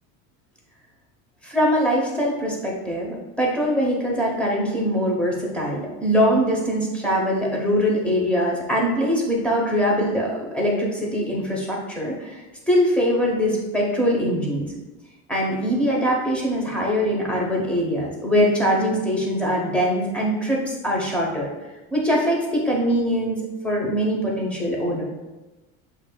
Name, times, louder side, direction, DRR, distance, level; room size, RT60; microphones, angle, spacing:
voice 1, 1.4-12.4 12.7-14.7 15.3-21.5 21.9-25.0, equal, 5° left, -3 dB, 0.9 m, -22 dB
7.1 x 3.3 x 2.2 m, 1.1 s
cardioid pair, 150°, 33 cm